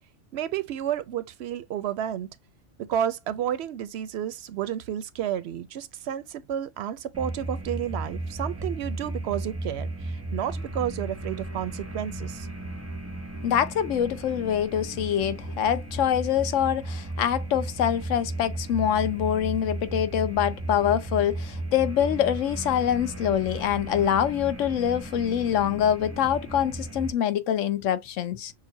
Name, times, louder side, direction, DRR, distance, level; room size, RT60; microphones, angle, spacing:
voice 1, 0.3-2.3 2.8-12.5, right 10 dB, 65° right, 0.7 m, -31 dB
sound 1, 7.1-27.1, right 2 dB, 15° right, 0.6 m, -35 dB
voice 2, 13.4-28.5, left 9 dB, 80° left, 1.0 m, -25 dB
6.6 x 2.4 x 2.6 m
omnidirectional pair, 1.3 m